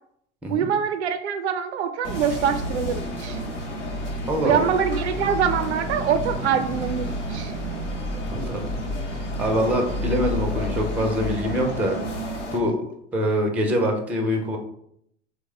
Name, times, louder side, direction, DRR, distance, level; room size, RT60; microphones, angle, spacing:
voice 1, 0.5-3.4 4.4-7.5, right 8 dB, 70° right, 10 dB, 0.5 m, -24 dB
sound 1, 2.0-12.6, left 1 dB, 80° left, 0.8 m, -30 dB
voice 2, 4.3-4.7 8.3-8.7 9.4-12.0 12.5-12.8 13.1-14.6, equal, 5° right, 2 dB, 0.3 m, -24 dB
3.0 x 2.1 x 3.5 m, 0.71 s
figure-of-eight pair, 80°, 35 cm